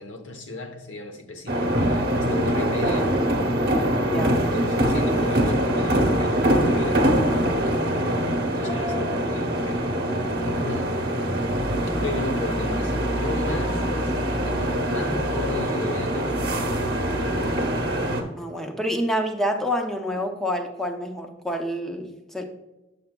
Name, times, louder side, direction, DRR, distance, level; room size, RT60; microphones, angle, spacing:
voice 1, 0.0-3.1 4.3-7.1 7.4-9.8 10.4-11.0 12.0-14.1 14.4-16.7 17.6-17.8, left 2 dB, 85° left, 5 dB, 0.9 m, -35 dB
sound 1, 1.5-18.2, right 1 dB, 55° right, 0.9 m, -23 dB
voice 2, 4.0-4.4 18.4-22.4, equal, ahead, 3 dB, 0.6 m, -27 dB
7.5 x 6.8 x 2.2 m, 1.0 s
head